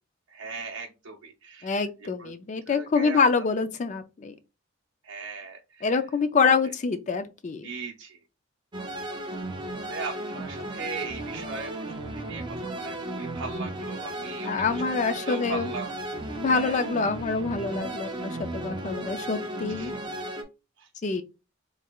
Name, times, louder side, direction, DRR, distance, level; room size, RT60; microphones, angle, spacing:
voice 1, 0.3-1.8 2.2-2.3 2.7-3.4 5.0-6.0 6.4-6.5 7.6-8.2 9.8-15.9 16.4-16.8 19.8-19.9 20.8-20.9, right 4 dB, 85° right, 0.5 m, -39 dB
voice 2, 1.6-4.3 5.8-7.7 14.5-15.7 16.3-19.9 21.0-21.2, left 4 dB, 35° left, 0.4 m, -26 dB
sound 1, 8.7-20.4, right 1 dB, 25° right, 0.5 m, -35 dB
3.7 x 3.1 x 2.3 m
head